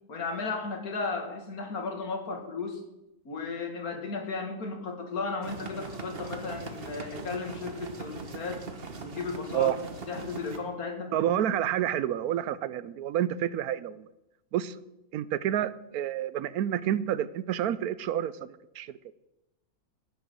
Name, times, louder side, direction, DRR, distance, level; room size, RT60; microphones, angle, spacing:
voice 1, 0.1-2.8 3.2-8.6 9.0-9.7 10.1-11.2, left 4 dB, 75° left, 4 dB, 2.4 m, -35 dB
sound 1, 5.4-10.6, right 4 dB, 40° right, 1.5 m, -41 dB
voice 2, 11.1-14.1 14.5-14.8 15.1-18.9, right 11 dB, 80° right, 17 dB, 1.1 m, -29 dB
16.5 x 7.0 x 7.7 m, 0.94 s
omnidirectional pair, 1.6 m